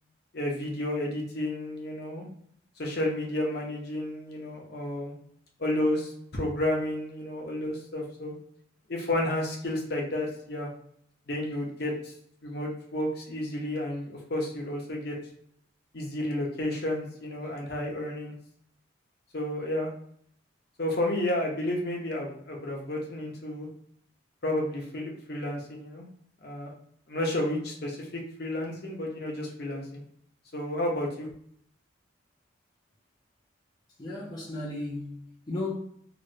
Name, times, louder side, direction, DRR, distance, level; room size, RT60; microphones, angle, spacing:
voice 1, 0.3-2.3 2.8-5.1 5.6-8.3 8.9-10.7 11.3-12.1 12.4-15.2 15.9-18.4 19.3-19.9 20.8-23.7 24.4-26.1 26.4-26.7 27.1-30.0 30.5-31.3, left 1 dB, 50° left, 0.8 m, -31 dB
voice 2, 34.0-35.7, left 2 dB, 20° left, 0.5 m, -35 dB
3.0 x 2.6 x 2.7 m
head